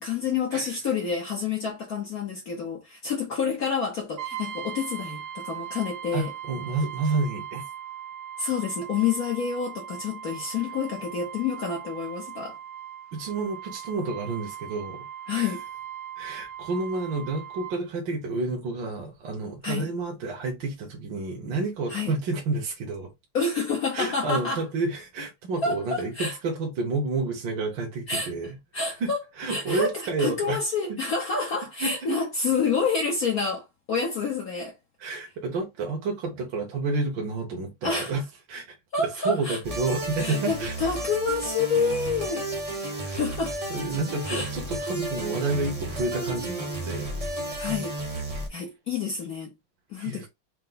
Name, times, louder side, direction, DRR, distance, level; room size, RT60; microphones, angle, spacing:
voice 1, 0.0-6.3 8.4-12.6 15.3-15.6 19.6-19.9 21.9-22.2 23.3-24.6 25.6-26.3 28.1-28.3 28.7-29.2 29.5-34.7 37.8-38.1 38.9-39.6 40.2-42.5 43.1-43.6 44.3-44.5 47.6-47.9 48.5-49.5 49.9-50.3, left 5 dB, 55° left, 1.1 m, -28 dB
Brass instrument, 4.2-17.8, right 9 dB, 90° right, 1.5 m, -39 dB
voice 2, 6.1-7.6 13.1-15.1 15.3-15.5 16.2-23.1 23.9-28.6 29.0-30.6 30.9-31.0 31.8-31.9 35.0-38.2 38.5-38.6 39.0-40.8 43.0-43.2 43.7-47.1 50.0-50.3, right 3 dB, 70° right, 1.8 m, -30 dB
sound 1, 39.6-48.5, right 1 dB, 25° right, 0.8 m, -32 dB
4.5 x 2.1 x 3.9 m
omnidirectional pair, 2.3 m